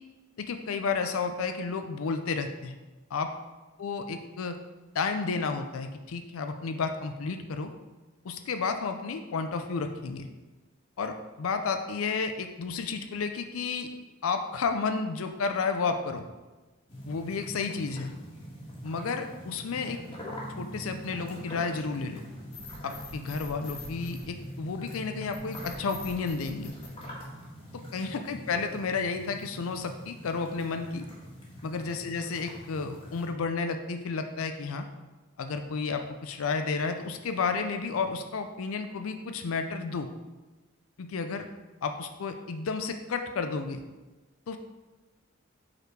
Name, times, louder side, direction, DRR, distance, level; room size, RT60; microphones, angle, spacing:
voice 1, 0.4-2.7 3.1-3.3 3.8-4.6 4.9-7.7 8.2-10.3 11.0-13.9 14.2-16.3 17.1-18.1 18.8-20.0 20.6-22.2 22.8-26.7 27.7-31.0 31.6-34.9 35.4-40.1 41.0-41.5 41.8-43.8 44.5-44.6, left 4 dB, 80° left, 7 dB, 0.5 m, -32 dB
sound 1, 16.9-33.3, equal, 25° left, 1.6 m, -43 dB
sound 2, 22.5-24.8 25.3-27.8, left 4 dB, 60° left, 1.3 m, -45 dB
5.4 x 4.2 x 4.6 m, 1.2 s
head